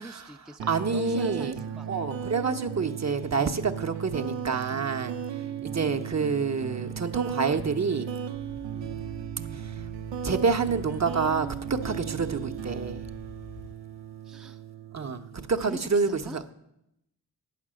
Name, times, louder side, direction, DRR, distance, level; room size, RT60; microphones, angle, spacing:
voice 1, 0.0-2.3 5.4-5.7 8.7-9.0 14.2-14.6 15.6-16.4, right 1 dB, ahead, 5 dB, 0.5 m, -44 dB
sound 1, 0.6-15.7, right 8 dB, 85° right, 0.6 m, -36 dB
voice 2, 0.7-1.6 1.9-5.2 5.6-8.1 9.5-9.8 10.2-13.1 14.9-16.5, right 5 dB, 40° right, 7 dB, 0.8 m, -28 dB
sound 2, 8.3-13.7, left 1 dB, 90° left, 3.0 m, -46 dB
9.4 x 5.9 x 7.5 m, 0.81 s
cardioid pair, 40°, 42 cm